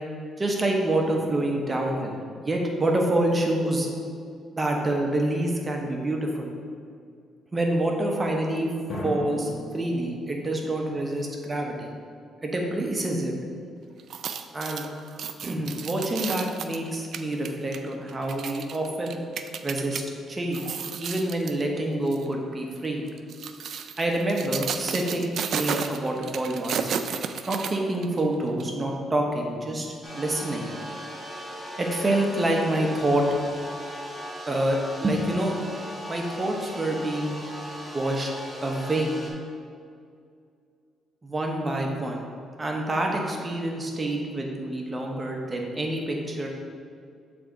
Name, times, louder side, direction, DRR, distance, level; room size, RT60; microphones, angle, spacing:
voice 1, 0.4-2.1 2.4-3.9 4.6-6.5 7.5-8.7 9.0-11.9 12.4-13.3 14.5-14.9 15.4-19.2 19.6-20.0 20.3-23.1 24.0-26.9 27.5-30.7 31.8-33.2 34.5-35.5 36.1-37.3 37.9-38.3 38.6-39.1 41.2-42.2 42.6-46.5, right 1 dB, 25° right, 1 dB, 0.9 m, -27 dB
sound 1, 0.9-4.0 8.9-12.5, equal, 45° left, 1.5 m, -41 dB
sound 2, 14.0-20.0 20.4-21.6 22.1-22.3 23.1-28.2 28.6-28.7, right 7 dB, 65° right, 0.3 m, -33 dB
sound 3, 30.0-39.3, equal, ahead, 1.3 m, -39 dB
8.0 x 3.5 x 3.9 m, 2.3 s
cardioid pair, 90°, 0 cm